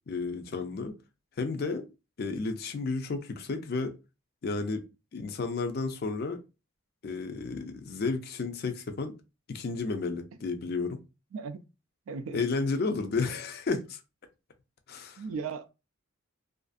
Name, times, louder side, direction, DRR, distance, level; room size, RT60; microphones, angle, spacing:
voice 1, 0.1-0.9 1.4-1.9 2.2-3.9 4.4-4.8 5.1-6.4 7.0-9.1 9.5-11.0 12.3-14.0 14.9-15.2, left 4 dB, 50° left, 0.4 m, -32 dB
voice 2, 12.1-12.4 15.2-15.7, right 5 dB, 85° right, 0.3 m, -36 dB
2.5 x 2.3 x 2.4 m
head